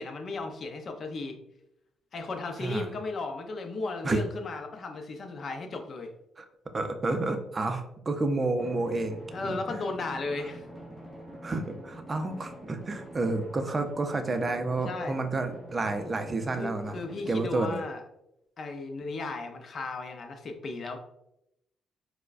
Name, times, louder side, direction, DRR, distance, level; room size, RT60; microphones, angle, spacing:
voice 1, 0.0-1.4 2.1-6.1 9.3-10.6 14.8-15.2 16.5-18.0 18.6-21.0, left 3 dB, 50° left, 4 dB, 0.5 m, -35 dB
voice 2, 6.7-9.8 11.4-17.0 17.3-17.8, right 2 dB, 30° right, 6 dB, 0.4 m, -30 dB
Drum, 8.6-17.5, equal, 5° left, 0.7 m, -46 dB
4.5 x 2.1 x 2.4 m, 0.82 s
cardioid pair, 90°, 0 cm